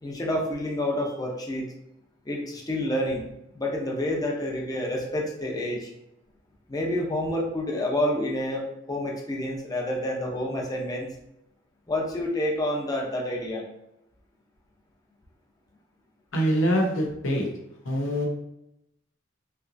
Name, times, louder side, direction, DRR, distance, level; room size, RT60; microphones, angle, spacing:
voice 1, 0.0-1.7 2.2-3.3 3.5-5.9 6.7-11.1 11.9-13.7, left 1 dB, 20° left, -1 dB, 0.6 m, -28 dB
voice 2, 16.3-17.5 17.8-18.3, equal, 85° left, 0 dB, 0.9 m, -24 dB
3.3 x 2.9 x 2.6 m, 0.82 s
head